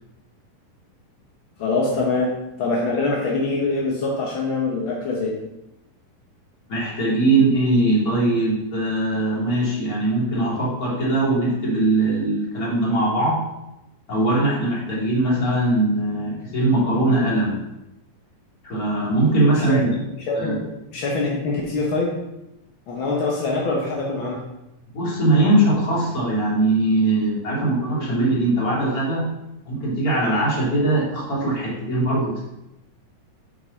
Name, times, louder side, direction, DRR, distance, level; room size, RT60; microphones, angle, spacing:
voice 1, 1.6-5.4 19.6-19.8 20.3-20.6 20.9-22.2 22.9-24.4, left 3 dB, 70° left, -3 dB, 1.2 m, -24 dB
voice 2, 6.7-13.4 14.1-17.6 18.6-19.9 20.3-20.6 24.9-29.3 29.6-32.4, right 2 dB, 30° left, -6 dB, 2.5 m, -21 dB
8.2 x 5.3 x 4.0 m, 0.91 s
omnidirectional pair, 3.8 m